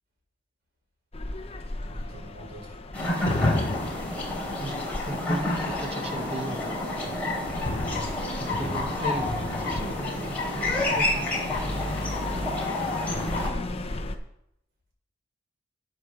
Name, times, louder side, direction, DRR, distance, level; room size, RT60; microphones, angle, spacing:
sound 1, 1.1-14.2, left 2 dB, 30° left, 0.8 m, -34 dB
voice 1, 1.8-3.1, right 1 dB, 55° right, -1 dB, 4.5 m, -47 dB
sound 2, 2.9-13.5, left 2 dB, 10° left, 3.3 m, -29 dB
voice 2, 5.0-6.7 8.4-11.2, right 1 dB, 30° right, 7 dB, 1.1 m, -36 dB
9.1 x 8.0 x 6.3 m, 0.79 s
head